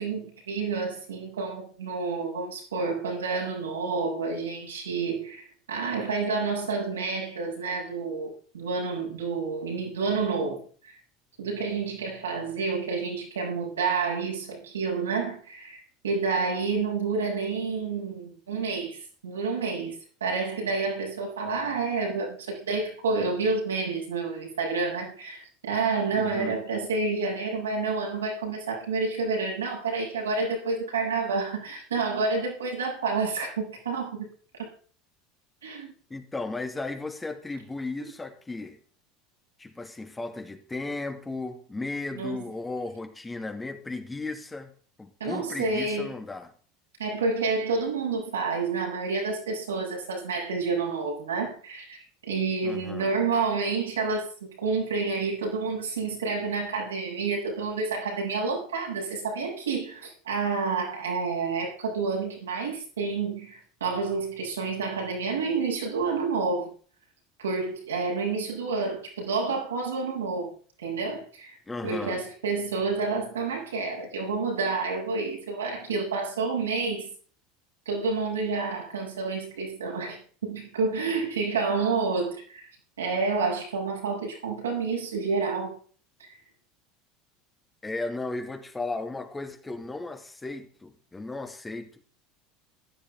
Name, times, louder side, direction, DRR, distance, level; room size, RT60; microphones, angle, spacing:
voice 1, 0.0-11.0 11.4-34.3 34.6-34.7 35.6-35.9 42.1-42.4 45.2-46.1 47.0-52.0 52.3-66.7 67.4-71.6 71.8-77.1 77.9-82.7 83.0-85.8 86.3-86.4, right 4 dB, 85° right, 7.5 m, -29 dB
voice 2, 26.2-26.6 36.1-38.8 39.6-44.7 45.0-46.5 52.6-53.1 71.7-72.2 87.8-92.1, left 3 dB, 15° left, 2.5 m, -35 dB
15.5 x 12.0 x 3.8 m
hypercardioid pair, 80°, 0 cm